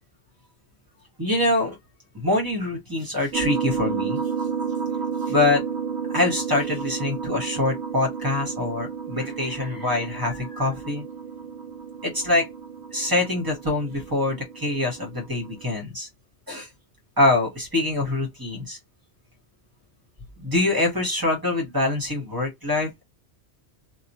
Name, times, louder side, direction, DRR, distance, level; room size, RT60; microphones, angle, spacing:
voice 1, 1.2-1.8 2.1-4.2 5.3-5.6 6.1-11.0 12.0-12.5 12.9-16.1 16.5-16.7 17.2-18.8 20.4-23.0, left 2 dB, 20° right, 1.1 m, -24 dB
sound 1, 3.3-15.7, right 6 dB, 75° right, 0.9 m, -32 dB
3.0 x 2.3 x 2.6 m
omnidirectional pair, 1.2 m